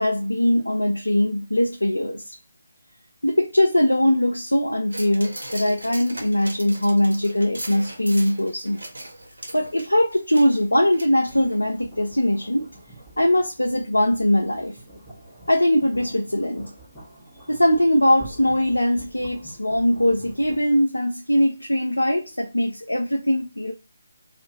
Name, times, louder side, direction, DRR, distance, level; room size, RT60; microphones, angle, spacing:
voice 1, 0.0-2.3 3.2-8.8 9.5-12.7 13.2-14.8 15.5-16.7 17.5-23.7, left 1 dB, 85° left, 0.5 m, -21 dB
sound 1, 4.9-11.8 12.2-12.3, right 1 dB, 75° right, 0.9 m, -39 dB
sound 2, 11.2-20.7, right 1 dB, ahead, 1.2 m, -46 dB
2.6 x 2.5 x 2.9 m
figure-of-eight pair, 150°, 0 cm